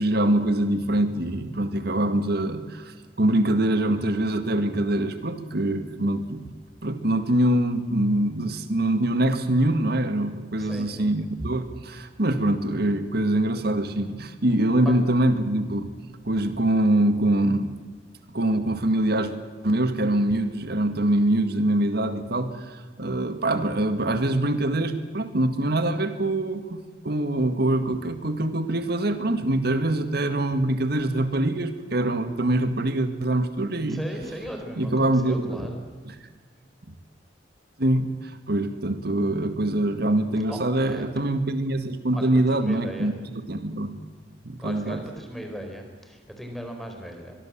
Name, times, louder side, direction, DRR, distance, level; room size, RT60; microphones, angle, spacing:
voice 1, 0.0-6.4 6.8-15.9 16.3-17.7 18.3-19.3 19.6-34.0 34.8-35.7 36.0-36.1 37.8-43.1 43.5-44.0 44.4-45.0, right 1 dB, 60° right, 9 dB, 2.0 m, -24 dB
voice 2, 10.6-11.1 14.8-15.0 33.9-35.8 40.5-40.6 40.8-41.1 42.1-43.1 44.6-47.3, equal, ahead, 4 dB, 4.3 m, -37 dB
23.0 x 23.0 x 7.5 m, 1.5 s
head